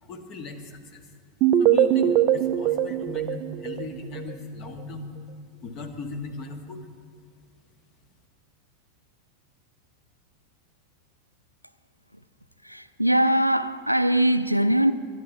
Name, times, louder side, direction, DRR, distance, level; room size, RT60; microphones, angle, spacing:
voice 1, 0.0-1.1 1.6-5.1 5.6-6.9, left 3 dB, 35° left, 1.6 m, -37 dB
sound 1, 1.4-4.3, right 11 dB, 40° right, 0.5 m, -22 dB
voice 2, 12.6-14.9, right 1 dB, 90° right, 0.5 m, -21 dB
23.5 x 10.5 x 4.6 m
figure-of-eight pair, 90°, 0 cm